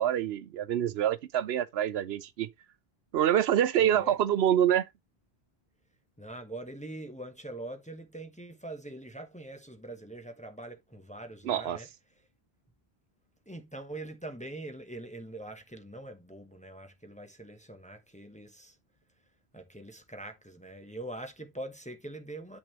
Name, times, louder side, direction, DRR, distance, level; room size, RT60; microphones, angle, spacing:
voice 1, 0.0-2.5 3.1-4.9 11.4-11.8, right 10 dB, 80° right, 0.8 m, -26 dB
voice 2, 3.8-4.2 6.2-11.9 13.5-18.8 19.5-22.6, right 1 dB, 10° left, 0.9 m, -43 dB
8.5 x 6.0 x 3.0 m
omnidirectional pair, 1.1 m